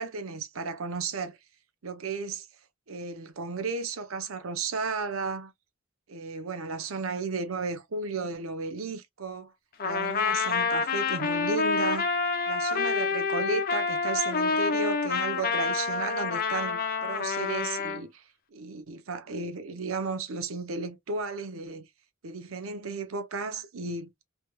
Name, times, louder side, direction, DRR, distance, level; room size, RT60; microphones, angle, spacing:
voice 1, 0.0-1.4 1.8-2.5 2.9-5.5 6.1-9.5 9.8-12.1 12.5-18.2 18.5-21.9 22.2-24.1, right 4 dB, 85° right, 0.7 m, -34 dB
Trumpet, 9.8-18.0, left 4 dB, 45° left, 0.7 m, -28 dB
3.3 x 3.1 x 2.2 m
head